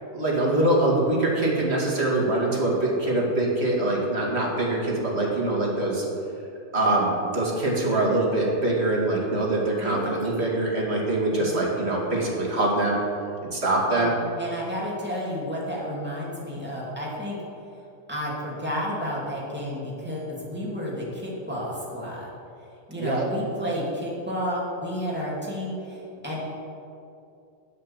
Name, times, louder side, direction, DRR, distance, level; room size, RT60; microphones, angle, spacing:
voice 1, 0.1-6.0 6.7-13.0 13.5-14.1 23.0-23.3, right 2 dB, 35° right, -3 dB, 2.3 m, -24 dB
voice 2, 9.8-10.2 11.4-11.7 13.9-14.1 14.4-17.4 18.1-22.3 22.9-26.4, equal, 5° right, -6 dB, 2.7 m, -31 dB
8.8 x 8.3 x 7.3 m, 2.6 s
omnidirectional pair, 2.1 m